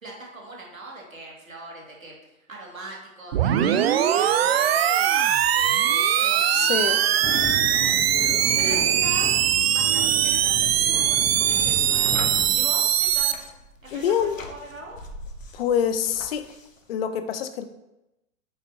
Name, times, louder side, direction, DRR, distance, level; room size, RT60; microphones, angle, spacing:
voice 1, 0.0-9.3 9.7-13.4 13.8-15.0, right 2 dB, 80° right, -2 dB, 2.3 m, -41 dB
sound 1, 3.3-13.3, right 10 dB, 50° right, 0.5 m, -21 dB
voice 2, 6.5-7.0 13.9-14.4 15.5-16.5 16.9-17.6, left 8 dB, 45° left, 10 dB, 0.7 m, -25 dB
sound 2, 7.2-12.6, left 1 dB, 5° left, 1.5 m, -34 dB
sound 3, 10.3-16.9, left 2 dB, 70° left, 1.1 m, -43 dB
8.0 x 5.8 x 2.8 m, 0.91 s
figure-of-eight pair, 105°, 40 cm